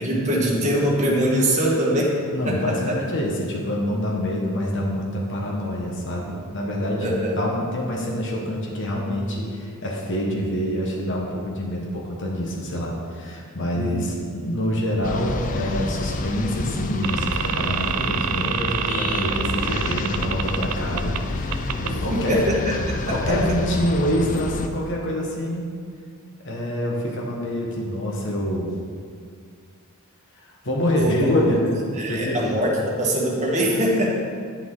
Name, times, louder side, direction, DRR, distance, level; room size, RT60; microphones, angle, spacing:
voice 1, 0.0-2.2 2.4-3.0 7.0-7.4 13.7-14.2 21.9-23.6 31.0-31.2 31.9-34.1, equal, 35° right, -3 dB, 1.5 m, -23 dB
voice 2, 2.3-22.4 23.1-25.7 26.4-28.7 30.4-31.7 32.1-32.6, equal, 55° left, -2 dB, 1.2 m, -26 dB
sound 1, 15.0-24.7, left 3 dB, 35° left, 0.4 m, -29 dB
sound 2, 17.0-21.2 21.5-21.9, right 9 dB, 90° right, 0.4 m, -27 dB
9.7 x 6.3 x 3.8 m, 2.1 s
head